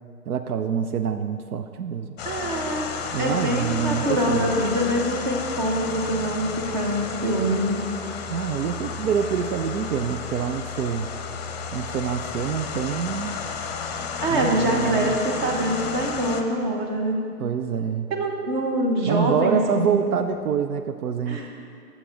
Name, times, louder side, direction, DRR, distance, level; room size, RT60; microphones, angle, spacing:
voice 1, 0.3-2.1 3.1-4.5 8.3-11.1 11.7-13.4 14.3-15.2 17.4-18.1 19.1-21.4, right 7 dB, 70° right, 8 dB, 0.5 m, -26 dB
sound 1, 2.2-16.4, left 5 dB, 40° left, 0.6 m, -32 dB
voice 2, 2.2-2.9 3.2-7.8 14.2-17.2 18.1-20.0 21.3-21.5, right 1 dB, 30° right, 1 dB, 1.1 m, -24 dB
8.2 x 7.2 x 3.8 m, 2.3 s
figure-of-eight pair, 135°, 46 cm